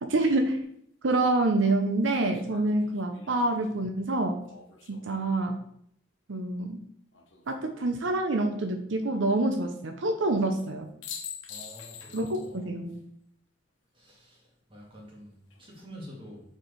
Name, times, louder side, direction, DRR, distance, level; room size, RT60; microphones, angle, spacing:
voice 1, 0.0-0.6 1.0-4.4 4.9-5.6 6.3-6.8 7.5-10.9 12.1-13.0, right 2 dB, 85° right, 5 dB, 0.7 m, -27 dB
sound 1, 0.6-0.7 2.1-5.3 7.1-7.8 10.6-10.7 11.0-12.6 12.9-13.0 15.3-15.8, left 7 dB, 80° left, 1.1 m, -46 dB
voice 2, 11.5-12.7 13.9-16.4, equal, 25° right, -2 dB, 2.0 m, -47 dB
6.2 x 4.6 x 4.6 m, 0.70 s
head